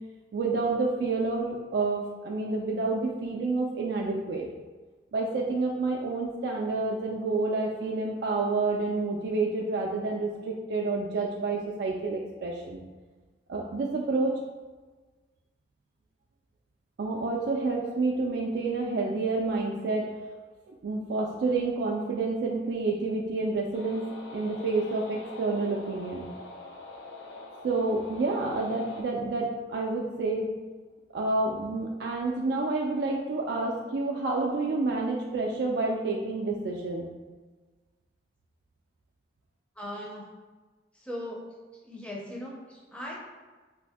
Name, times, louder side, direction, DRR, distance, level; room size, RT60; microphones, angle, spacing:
voice 1, 0.3-4.5 5.1-12.8 13.5-14.4 17.0-20.1 20.8-24.1 24.3-26.3 27.6-30.5 31.1-37.1, right 3 dB, 75° right, -1 dB, 0.3 m, -29 dB
sound 1, 23.7-29.0, left 2 dB, 80° left, 0.5 m, -44 dB
voice 2, 39.7-40.3 40.9-41.4 41.7-43.2, left 1 dB, 5° left, -4 dB, 0.5 m, -39 dB
2.7 x 2.5 x 3.4 m, 1.3 s
head